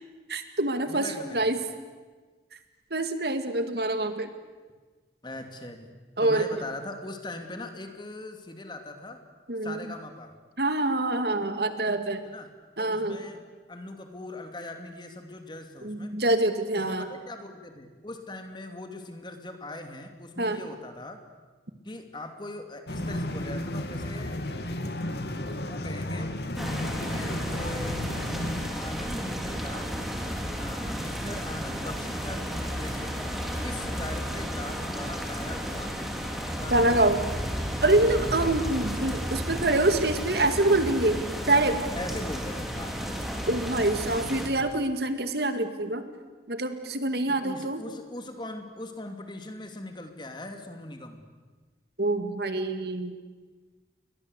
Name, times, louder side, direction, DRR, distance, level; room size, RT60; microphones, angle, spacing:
voice 1, 0.3-1.6 2.9-4.3 6.2-6.5 9.5-9.9 10.6-12.2 12.8-13.2 15.8-17.1 20.4-20.6 36.7-37.3 37.8-41.2 41.5-41.8 43.5-46.0 46.5-47.8 52.0-53.2, right 2 dB, 65° right, 9 dB, 2.2 m, -25 dB
voice 2, 0.9-1.4 5.2-5.9 6.2-9.2 9.6-10.3 12.2-12.5 12.8-13.4 13.7-16.1 16.7-21.2 21.8-24.4 25.7-26.4 27.0-28.1 28.7-29.9 30.6-33.2 33.6-36.0 36.5-37.0 38.3-38.4 41.9-43.0 47.3-51.2, left 2 dB, 25° left, 6 dB, 2.7 m, -40 dB
sound 1, 22.9-28.7, left 1 dB, 65° left, 2.5 m, -33 dB
sound 2, 26.6-44.5, equal, ahead, 3.5 m, -33 dB
30.0 x 22.5 x 8.3 m, 1.4 s
head